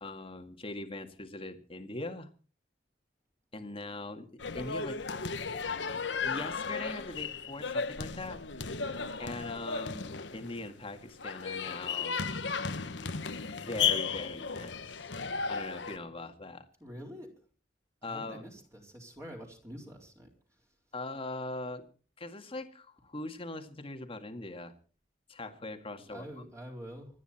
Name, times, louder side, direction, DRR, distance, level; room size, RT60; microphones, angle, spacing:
voice 1, 0.0-2.3 3.5-5.0 5.6-5.7 5.9-8.8 9.2-12.2 13.5-15.1 15.5-16.7 18.0-18.5 20.9-21.8 22.2-24.7 25.3-26.4, left 2 dB, 30° left, 6 dB, 2.0 m, -41 dB
sound 1, 4.4-16.0, left 5 dB, 80° left, 1.2 m, -35 dB
voice 2, 16.8-17.3 18.0-20.3 26.1-27.1, equal, 15° right, 0 dB, 4.2 m, -46 dB
26.5 x 9.9 x 4.4 m, 0.40 s
head